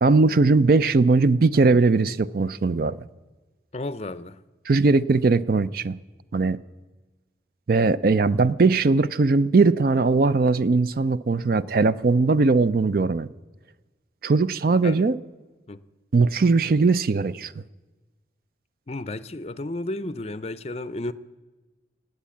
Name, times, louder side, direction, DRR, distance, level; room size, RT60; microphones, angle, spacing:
voice 1, 0.0-3.0 4.7-6.0 6.3-6.6 7.7-13.3 14.2-15.2 16.1-17.5, right 3 dB, 55° right, 0.4 m, -20 dB
voice 2, 3.7-4.4 14.8-15.0 15.7-15.8 18.9-21.1, left 2 dB, 35° left, 0.5 m, -32 dB
19.0 x 8.2 x 8.5 m
head